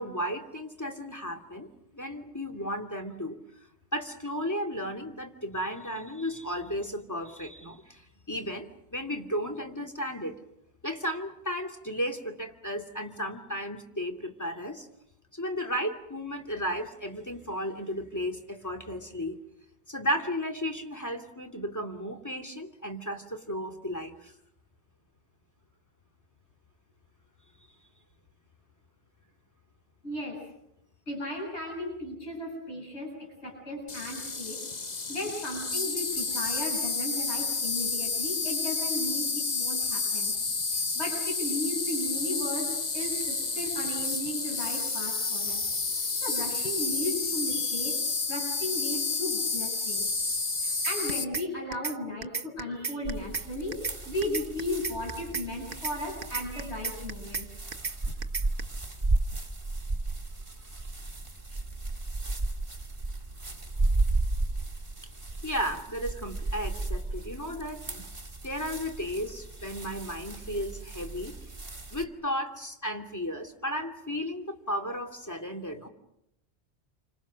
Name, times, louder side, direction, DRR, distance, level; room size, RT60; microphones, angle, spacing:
voice 1, 0.0-1.7 1.9-3.4 3.9-8.0 8.3-10.4 10.8-14.9 15.3-19.4 19.9-24.3 47.5-47.8 65.4-68.0 68.4-71.3 71.9-75.9, equal, 15° left, 5 dB, 2.7 m, -34 dB
voice 2, 30.0-30.4 31.1-34.6 35.1-40.4 40.7-45.6 46.2-48.0 48.3-50.1 50.6-57.5 61.5-61.6, left 1 dB, 80° left, -1 dB, 7.7 m, -35 dB
Insect, 33.9-51.2, left 4 dB, 40° left, 1.3 m, -30 dB
sound 1, 50.8-51.5 51.7-52.0 52.2-53.5 53.7-54.0 54.2-55.5 55.7-56.0 56.2-57.5 57.7-58.0 58.2-58.6, right 5 dB, 50° right, 1.3 m, -33 dB
sound 2, 53.0-72.0, right 2 dB, 30° right, 2.0 m, -34 dB
29.0 x 25.5 x 6.4 m, 0.82 s
omnidirectional pair, 1.1 m